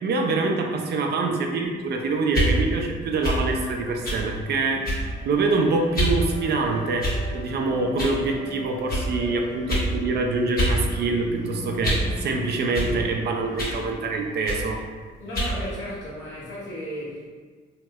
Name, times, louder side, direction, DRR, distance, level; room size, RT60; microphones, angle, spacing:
voice 1, 0.0-4.9 5.2-14.8, right 3 dB, 55° right, 2 dB, 0.5 m, -25 dB
sound 1, 2.0-15.0, left 3 dB, 20° left, 0.4 m, -42 dB
sound 2, 2.3-2.5 3.2-3.4 4.0-4.2 4.8-5.1 5.9-6.2 7.0-7.4 8.0-8.2 8.9-9.0 9.7-9.9 10.6-10.8 11.1-12.1 12.7-12.9 13.6-13.8 14.4-14.6 15.3-15.5, equal, 50° left, 1.2 m, -25 dB
voice 2, 15.2-17.3, equal, 75° left, -8 dB, 1.2 m, -34 dB
2.9 x 2.8 x 2.3 m, 1.5 s
cardioid pair, 90°, 20 cm